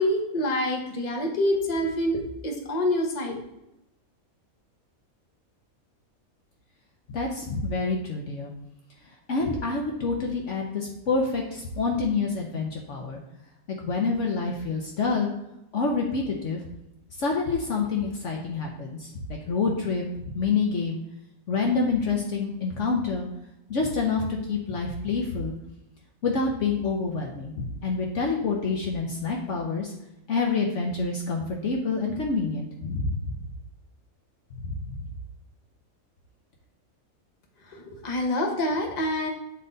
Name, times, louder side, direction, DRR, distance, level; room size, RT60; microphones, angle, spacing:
voice 1, 0.0-3.4 37.7-39.3, left 1 dB, 30° left, 1 dB, 1.1 m, -26 dB
voice 2, 7.1-8.5 9.3-13.2 13.7-15.3 15.7-16.7 17.2-21.0 21.5-23.2 23.7-25.5 26.2-29.9 30.3-33.3 34.6-34.8, left 4 dB, 60° left, 0 dB, 1.1 m, -27 dB
8.7 x 3.9 x 4.0 m, 0.88 s
omnidirectional pair, 1.5 m